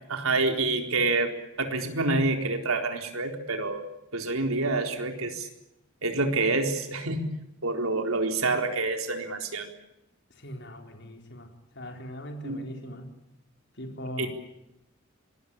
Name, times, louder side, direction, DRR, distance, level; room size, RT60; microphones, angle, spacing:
voice 1, 0.1-1.3 1.6-3.8 4.1-5.5 6.0-7.3 7.6-9.7 12.4-12.6 14.2-14.3, right 3 dB, 90° right, 5 dB, 4.1 m, -27 dB
voice 2, 10.4-13.1 13.8-14.3, equal, 55° left, 4 dB, 4.3 m, -40 dB
25.5 x 20.5 x 8.7 m, 0.88 s
head